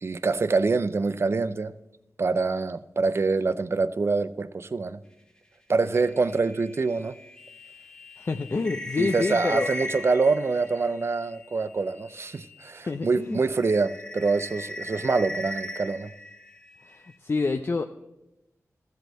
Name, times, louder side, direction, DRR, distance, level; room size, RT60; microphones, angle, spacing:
voice 1, 0.0-1.7 2.2-5.0 5.7-7.2 9.0-16.1, right 4 dB, 50° right, 0.5 m, -25 dB
sound 1, 5.9-12.8 13.1-17.1, left 1 dB, 15° left, 1.3 m, -39 dB
voice 2, 8.2-9.7 12.8-13.4 16.8-17.8, left 3 dB, 45° left, 0.5 m, -28 dB
14.5 x 5.4 x 7.4 m
wide cardioid pair, 70°, 6 cm